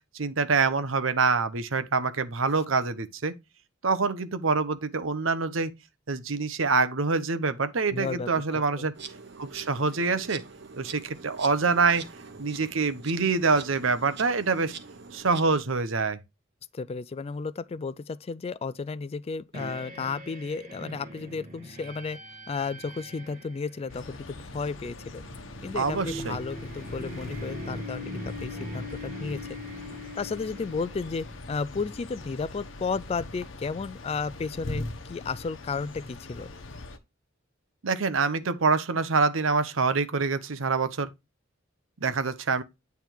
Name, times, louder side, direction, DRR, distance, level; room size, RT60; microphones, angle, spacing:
voice 1, 0.1-3.3 3.8-5.7 6.1-8.9 9.4-10.4 10.8-12.0 12.4-14.7 15.1-16.2 25.7-26.4 37.8-41.1 42.0-42.6, right 4 dB, 90° right, 0.9 m, -25 dB
voice 2, 7.9-8.9 16.7-22.2 22.5-25.2 25.6-29.6 30.1-36.5, left 4 dB, 30° left, 0.3 m, -33 dB
Insect, 8.9-15.6, right 5 dB, 60° right, 1.1 m, -44 dB
sound 1, 19.5-31.6, left 1 dB, 45° right, 1.4 m, -41 dB
sound 2, 23.9-37.0, left 2 dB, 70° left, 1.0 m, -42 dB
9.1 x 3.5 x 4.5 m
head